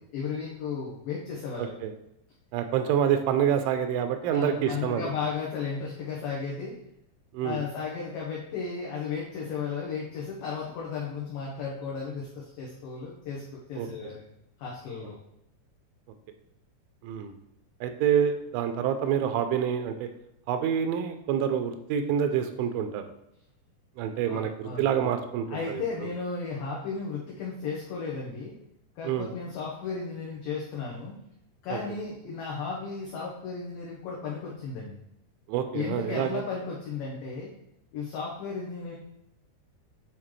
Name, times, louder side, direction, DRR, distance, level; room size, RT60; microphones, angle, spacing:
voice 1, 0.1-1.7 4.3-6.7 7.4-14.2 14.6-15.2 24.3-25.0 25.5-28.5 29.0-31.2 31.6-35.0 35.7-37.5 37.9-39.0, left 5 dB, 85° left, -3 dB, 1.9 m, -34 dB
voice 2, 1.6-1.9 2.5-5.1 7.3-7.6 13.8-13.9 17.0-17.3 17.8-20.1 20.5-23.0 24.0-26.1 29.0-29.3 31.7-31.8 35.5-36.4, right 8 dB, 90° right, 7 dB, 2.9 m, -27 dB
8.8 x 3.6 x 3.1 m, 0.80 s
omnidirectional pair, 5.3 m